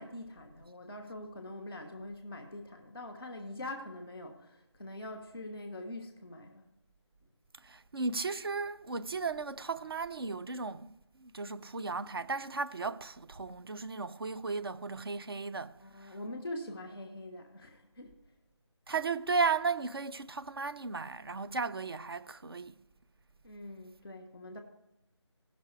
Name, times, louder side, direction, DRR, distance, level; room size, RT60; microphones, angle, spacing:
voice 1, 0.0-6.7 15.8-18.2 23.4-24.6, left 1 dB, 5° left, 0.4 m, -44 dB
voice 2, 7.6-16.2 18.9-22.7, right 4 dB, 55° right, 0.5 m, -35 dB
17.0 x 5.9 x 4.7 m
figure-of-eight pair, 160°, 15 cm